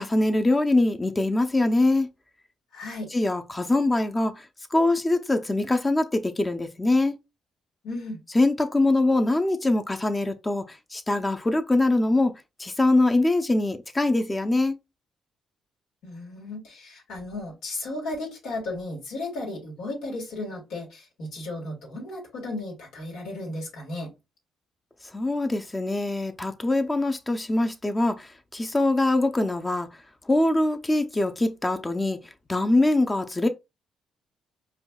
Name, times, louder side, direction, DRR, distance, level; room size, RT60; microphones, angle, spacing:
voice 1, 0.0-2.1 3.1-4.4 4.7-7.2 8.3-10.6 10.9-12.3 12.6-14.8 25.1-29.9 30.3-32.2 32.5-33.5, left 2 dB, 20° left, 0.6 m, -23 dB
voice 2, 2.7-3.1 7.8-8.2 16.0-24.1, left 2 dB, 85° left, 1.7 m, -35 dB
5.0 x 2.2 x 2.3 m
cardioid pair, 90°, 0 cm